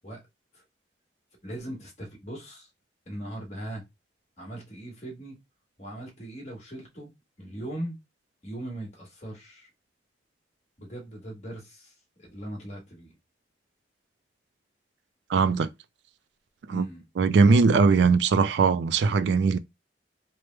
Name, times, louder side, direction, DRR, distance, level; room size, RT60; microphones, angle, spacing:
voice 1, 1.4-2.7 3.1-3.8 4.4-5.4 5.8-7.1 7.4-8.0 8.4-9.7 10.8-13.2 16.7-17.0, right 1 dB, 40° left, 1.2 m, -39 dB
voice 2, 15.3-15.7 16.7-16.9 17.2-19.6, right 4 dB, 75° right, 0.3 m, -20 dB
3.1 x 2.0 x 3.2 m
head